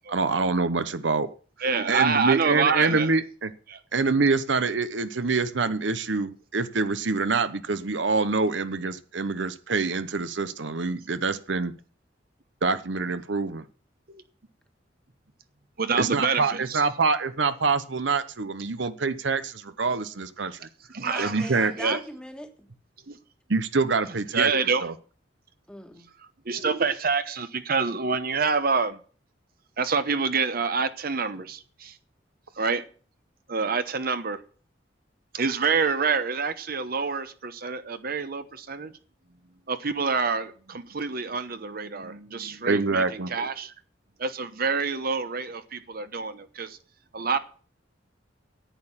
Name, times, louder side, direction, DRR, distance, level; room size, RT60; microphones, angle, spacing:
voice 1, 0.1-1.3 1.9-3.5 3.9-11.7 12.6-13.6 16.0-20.7 21.2-21.7 23.5-24.5 24.8-24.9 42.7-43.3, right 4 dB, 80° right, 12 dB, 0.9 m, -25 dB
voice 2, 1.6-3.1 3.7-3.8 14.1-14.2 15.8-16.8 18.8-18.9 20.9-21.5 21.8-22.0 23.1-23.2 24.3-24.9 26.4-29.0 29.8-32.0 32.6-32.8 33.5-34.4 35.3-38.9 39.7-43.7 44.2-46.8 47.1-47.4, right 5 dB, 55° right, 11 dB, 1.0 m, -27 dB
voice 3, 21.0-22.7 25.7-26.1, equal, 5° left, 6 dB, 1.5 m, -39 dB
10.5 x 8.9 x 7.3 m, 0.41 s
head